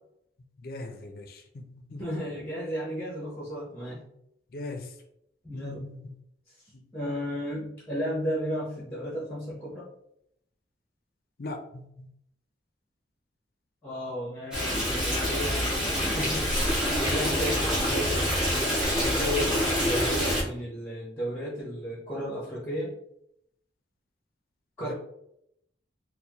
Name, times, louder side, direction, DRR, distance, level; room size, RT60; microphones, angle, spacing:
voice 1, 0.6-2.0 4.5-4.9 5.5-6.0 6.7-6.9 11.4-12.1 24.8-24.9, left 2 dB, 55° left, 6 dB, 0.4 m, -40 dB
voice 2, 2.0-4.0 5.4-5.9 6.9-9.9 13.8-18.3 19.0-22.9 24.8-24.9, equal, 10° left, -6 dB, 0.8 m, -34 dB
Stream, 14.5-20.4, equal, 5° right, 1.2 m, -26 dB
4.0 x 2.1 x 2.9 m, 0.77 s
head